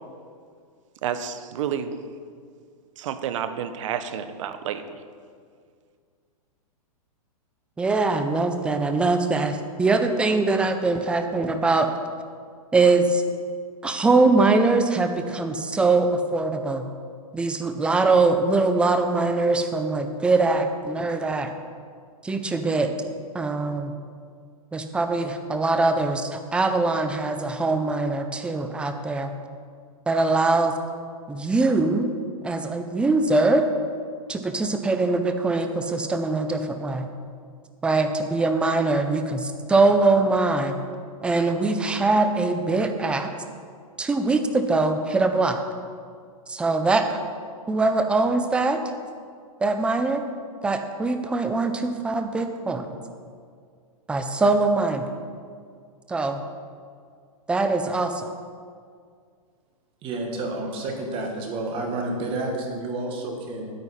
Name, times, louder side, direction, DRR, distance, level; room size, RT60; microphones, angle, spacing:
voice 1, 1.0-2.0 3.0-5.0, right 8 dB, 55° right, 11 dB, 0.8 m, -30 dB
voice 2, 7.8-11.9 12.7-13.2 13.8-16.8 17.3-21.5 22.2-22.9 23.3-23.9 24.7-29.3 30.1-30.7 31.3-32.1 32.4-33.6 34.3-37.1 37.8-40.8 41.2-43.3 44.0-45.6 46.5-47.0 47.7-48.8 49.6-50.2 50.6-52.9 54.1-55.1 56.1-56.4 57.5-58.3, right 3 dB, 5° right, 7 dB, 0.4 m, -22 dB
voice 3, 60.0-63.7, right 2 dB, 30° right, 1 dB, 1.6 m, -30 dB
9.4 x 9.0 x 4.2 m, 2.1 s
hypercardioid pair, 145°, 19 cm